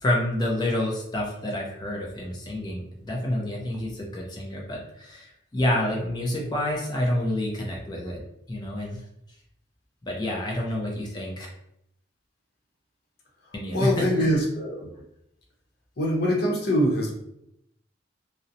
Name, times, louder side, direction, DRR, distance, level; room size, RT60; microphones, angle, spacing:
voice 1, 0.0-8.2 8.5-9.0 10.0-11.5 13.5-14.3, left 1 dB, 20° left, -2 dB, 0.4 m, -28 dB
voice 2, 13.5-14.9 16.0-17.1, equal, 55° left, -2 dB, 0.7 m, -24 dB
2.7 x 2.0 x 2.6 m, 0.78 s
head